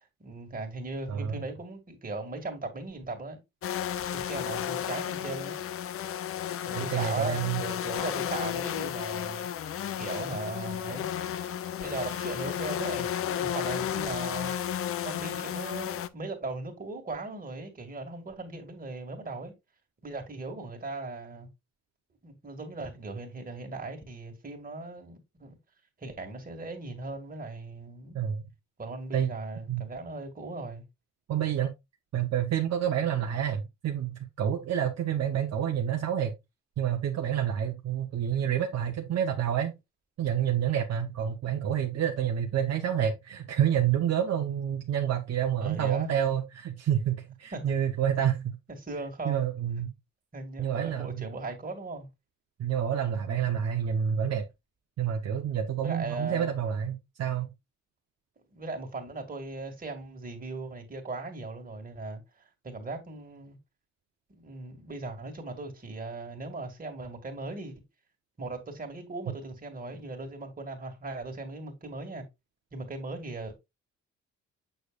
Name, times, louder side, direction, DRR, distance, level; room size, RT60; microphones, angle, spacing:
voice 1, 0.0-3.4 4.1-5.7 6.6-9.7 10.0-11.1 11.8-14.5 15.0-19.5 20.0-21.5 22.2-25.6 26.0-28.2 28.8-30.8 40.2-40.4 45.6-46.1 47.5-47.8 48.8-49.4 50.3-52.1 55.8-56.5 58.5-63.6 64.3-67.8 68.4-72.3 72.7-73.6, right 3 dB, 30° right, 2.2 m, -38 dB
voice 2, 1.1-1.4 6.7-7.6 28.1-28.4 29.1-29.3 29.7-29.9 31.3-31.7 32.1-36.3 36.8-39.7 40.2-48.6 49.2-49.9 50.6-51.2 52.6-54.4 55.0-57.5, right 9 dB, 55° right, 0.9 m, -28 dB
sound 1, 3.6-16.1, left 10 dB, 50° left, 0.5 m, -33 dB
6.7 x 6.5 x 2.4 m
cardioid pair, 90°, 30 cm